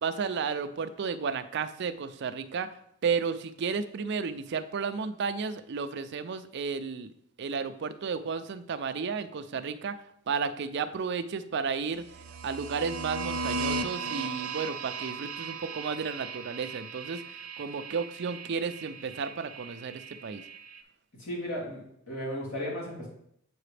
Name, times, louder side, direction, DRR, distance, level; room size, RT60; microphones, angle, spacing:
voice 1, 0.0-2.7 3.0-7.1 7.4-10.0 10.3-12.0 12.4-17.2 17.6-20.4, right 5 dB, 55° right, 10 dB, 0.4 m, -33 dB
sound 1, 12.0-20.8, right 4 dB, 85° right, 0.7 m, -37 dB
voice 2, 21.2-23.1, equal, 75° left, -6 dB, 3.0 m, -35 dB
7.7 x 4.9 x 3.3 m, 0.70 s
head